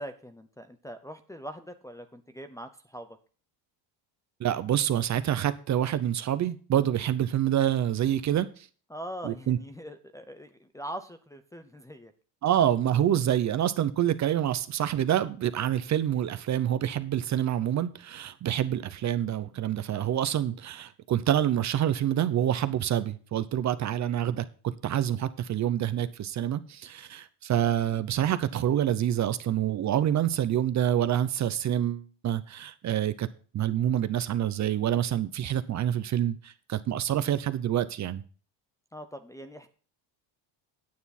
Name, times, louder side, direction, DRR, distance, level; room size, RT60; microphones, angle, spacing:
voice 1, 0.0-3.2 8.9-12.1 38.9-39.7, equal, 5° left, 0.6 m, -42 dB
voice 2, 4.4-8.7 9.2-9.6 12.4-33.3 33.5-38.2, right 11 dB, 35° right, 0.7 m, -27 dB
9.5 x 9.4 x 4.2 m
cardioid pair, 155°, 48 cm